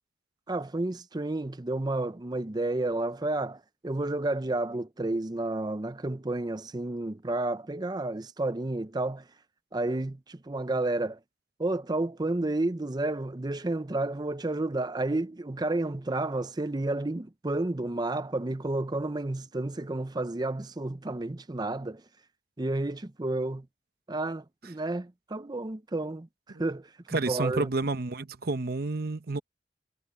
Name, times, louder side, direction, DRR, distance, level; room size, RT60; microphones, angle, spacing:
voice 1, 0.5-9.2 9.7-11.2 11.6-22.0 22.6-23.7 24.1-26.3 26.6-27.7, right 2 dB, 25° right, 0.6 m, -31 dB
voice 2, 27.1-29.4, right 3 dB, 60° right, 0.9 m, -30 dB
head